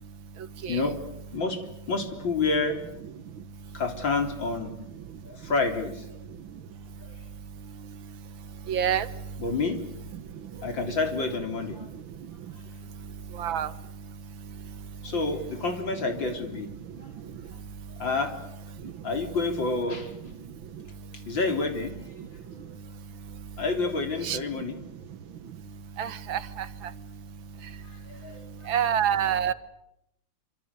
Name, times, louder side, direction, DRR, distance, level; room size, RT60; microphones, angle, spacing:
voice 1, 0.7-1.0 1.3-2.8 3.7-4.8 5.3-6.2 7.0-7.1 9.4-9.8 10.5-11.9 15.0-16.7 17.0-17.3 18.0-18.3 19.0-20.1 21.1-22.2 22.5-22.6 23.6-24.8 27.8-28.7, left 3 dB, 70° left, 5 dB, 4.4 m, -29 dB
voice 2, 8.7-9.1 13.4-13.7 24.2-24.4 26.0-26.4 28.7-29.5, right 9 dB, 80° right, 13 dB, 2.0 m, -26 dB
27.0 x 26.0 x 8.4 m, 0.80 s
omnidirectional pair, 2.1 m